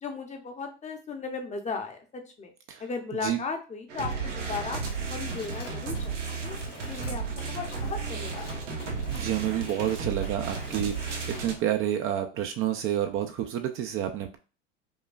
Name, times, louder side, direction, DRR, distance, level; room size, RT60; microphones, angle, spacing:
voice 1, 0.0-2.5 2.8-4.8 5.1-8.5, left 4 dB, 20° left, 5 dB, 0.7 m, -36 dB
sound 1, 3.9-11.5, right 5 dB, 90° right, 1.0 m, -33 dB
Mechanisms, 4.5-11.6, left 5 dB, 80° left, 1.1 m, -47 dB
voice 2, 9.1-14.4, right 11 dB, 40° right, 5 dB, 0.5 m, -29 dB
5.1 x 2.3 x 2.3 m, 0.34 s
hypercardioid pair, 100°, 36 cm